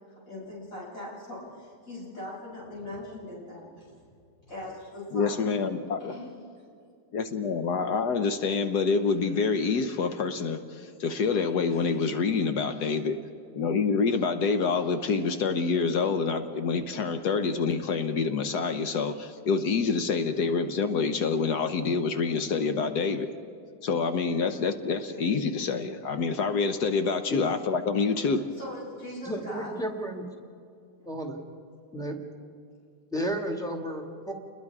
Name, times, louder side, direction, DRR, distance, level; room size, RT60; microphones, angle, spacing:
voice 1, 0.3-3.9 4.5-5.4 6.0-6.3 11.7-11.9 28.6-29.7, left 1 dB, 55° left, -7 dB, 8.5 m, -40 dB
voice 2, 5.1-6.1 7.1-13.2 13.5-23.3 23.8-28.5, left 5 dB, 80° left, 8 dB, 1.5 m, -27 dB
voice 3, 29.2-30.2 31.1-31.4 31.9-32.2 33.1-34.3, right 1 dB, ahead, 2 dB, 2.1 m, -32 dB
29.0 x 21.0 x 4.8 m, 2.3 s
omnidirectional pair, 1.7 m